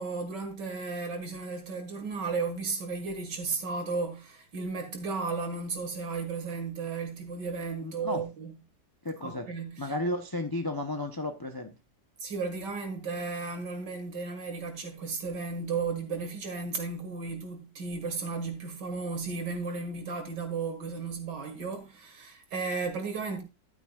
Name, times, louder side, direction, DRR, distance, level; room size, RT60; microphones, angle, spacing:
voice 1, 0.0-8.5 9.2-9.9 12.2-23.4, right 4 dB, 70° right, 2.5 m, -34 dB
voice 2, 7.8-8.2 9.0-9.5 9.8-11.7, left 1 dB, 35° left, 0.3 m, -33 dB
12.0 x 9.1 x 2.4 m
omnidirectional pair, 2.0 m